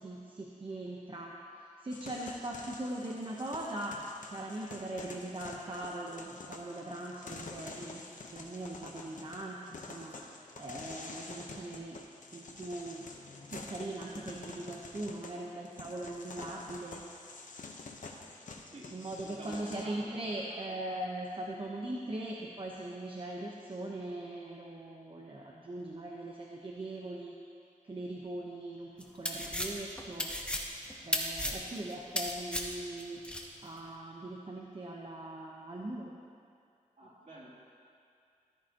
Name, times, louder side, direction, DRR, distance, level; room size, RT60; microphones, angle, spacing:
voice 1, 0.0-1.3 1.6-4.0 4.3-8.0 8.3-10.2 10.6-12.0 12.3-13.1 13.5-17.0 18.9-27.3 27.8-30.3 31.0-33.2 33.6-36.2, right 1 dB, 40° right, -3 dB, 0.9 m, -40 dB
sound 1, 1.9-19.9, left 3 dB, 70° left, 0.9 m, -48 dB
voice 2, 18.6-20.6 20.9-21.0 37.0-37.5, right 1 dB, 60° right, -6 dB, 3.0 m, -50 dB
sound 2, 29.0-33.5, left 1 dB, 5° left, 1.0 m, -35 dB
13.5 x 13.5 x 2.9 m, 2.4 s
wide cardioid pair, 110°, 14 cm